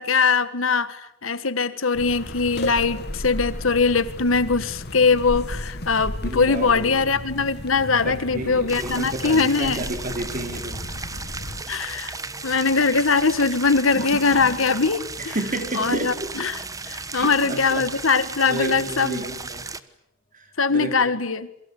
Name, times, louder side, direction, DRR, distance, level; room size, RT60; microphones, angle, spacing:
voice 1, 0.0-9.8 11.7-12.2 12.4-15.3 15.7-19.2 20.6-21.5, left 4 dB, 75° left, 13 dB, 1.6 m, -21 dB
sound 1, 1.9-11.6, left 1 dB, 55° left, 1.7 m, -34 dB
sound 2, 2.6-10.6 10.9-15.2 15.8-16.2 18.4-18.5 19.4-19.5, left 2 dB, 30° left, 3.7 m, -45 dB
voice 2, 6.2-7.0 8.0-10.8 15.2-16.1 17.1-17.9 18.5-19.7 20.3-20.9, right 1 dB, 40° right, 5 dB, 4.8 m, -31 dB
sound 3, 8.7-19.8, right 4 dB, 15° right, 1.2 m, -35 dB
28.0 x 24.0 x 8.5 m, 0.80 s
head